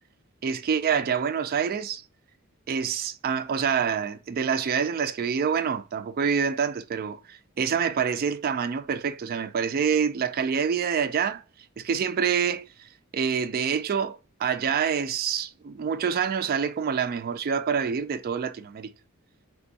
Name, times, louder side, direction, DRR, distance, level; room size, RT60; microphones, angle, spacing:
voice 1, 0.4-2.0 2.7-11.4 11.8-18.9, right 7 dB, 45° right, 0.3 m, -27 dB
3.5 x 3.4 x 4.0 m
head